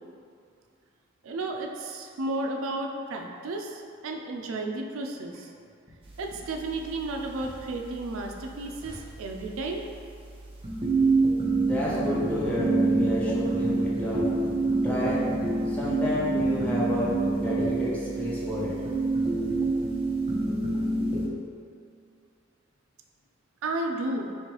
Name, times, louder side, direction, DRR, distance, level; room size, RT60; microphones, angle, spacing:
voice 1, 1.2-5.5 6.2-9.8 23.6-24.3, right 2 dB, 85° right, 2 dB, 0.4 m, -33 dB
sound 1, 6.0-21.3, right 2 dB, 25° right, 0.5 m, -28 dB
voice 2, 11.7-14.3 14.8-15.3 15.7-18.8, left 1 dB, 5° left, -7 dB, 0.7 m, -30 dB
3.2 x 3.0 x 4.5 m, 2.3 s
head